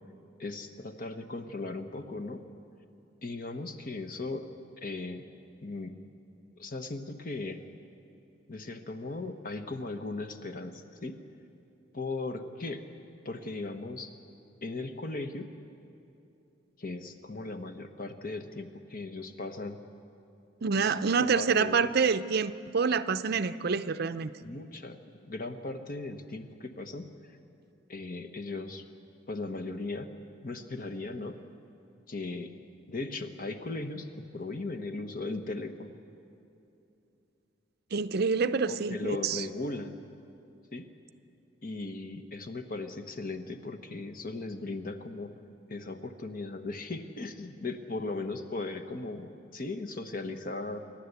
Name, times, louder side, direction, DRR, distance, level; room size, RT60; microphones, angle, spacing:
voice 1, 0.4-2.4 3.2-4.4 4.8-5.3 5.6-5.9 6.6-7.6 8.5-11.2 11.9-12.8 13.2-14.1 14.6-15.5 16.8-19.8 20.7-21.9 23.3-23.5 24.4-27.1 27.9-28.8 29.3-30.1 30.4-31.4 32.1-32.5 32.9-35.9 38.7-40.0 40.7-40.9 41.6-45.3 45.7-50.8, left 2 dB, 45° left, 7 dB, 1.2 m, -37 dB
voice 2, 20.6-24.3 37.9-39.4, right 5 dB, 55° right, 12 dB, 0.6 m, -27 dB
28.5 x 12.0 x 8.2 m, 2.8 s
head